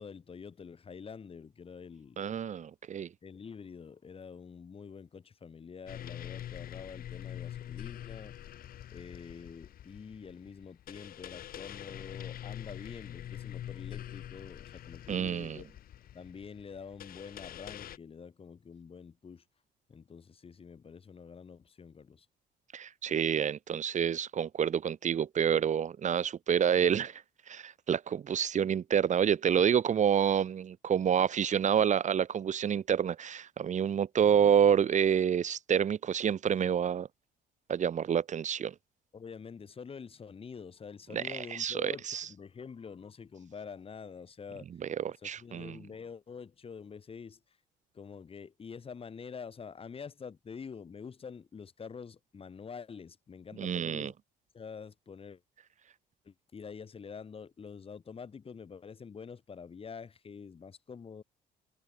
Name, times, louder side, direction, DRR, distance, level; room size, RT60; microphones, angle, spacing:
voice 1, 0.0-2.2 3.2-8.3 8.9-15.7 16.1-19.4 19.9-22.3 39.1-44.7 45.2-47.4 47.9-54.1 54.5-55.4 56.3-61.2, left 6 dB, 35° left, 7.1 m, -46 dB
voice 2, 2.2-3.1 15.1-15.6 22.7-27.2 27.5-37.1 37.7-38.7 41.1-42.3 44.8-45.8 53.6-54.1, right 8 dB, 45° right, 3.5 m, -28 dB
sound 1, 5.9-18.0, left 11 dB, 60° left, 3.5 m, -44 dB
cardioid pair, 110°, 17 cm